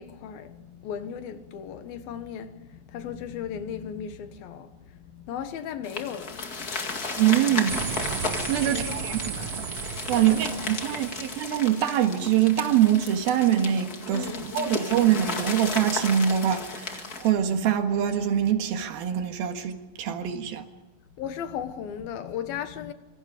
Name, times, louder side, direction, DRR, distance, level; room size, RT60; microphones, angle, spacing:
voice 1, 0.0-6.9 7.3-7.4 8.7-9.5 10.2-11.4 14.1-15.0 21.2-22.9, left 8 dB, 80° left, 3.2 m, -37 dB
sound 1, 5.8-17.3, left 4 dB, 30° left, 2.0 m, -34 dB
voice 2, 7.2-7.9 8.2-9.2 9.6-9.7 10.1-20.6, right 10 dB, 85° right, 3.5 m, -24 dB
sound 2, 7.7-11.6, right 7 dB, 55° right, 1.9 m, -34 dB
26.5 x 24.0 x 5.0 m
omnidirectional pair, 4.2 m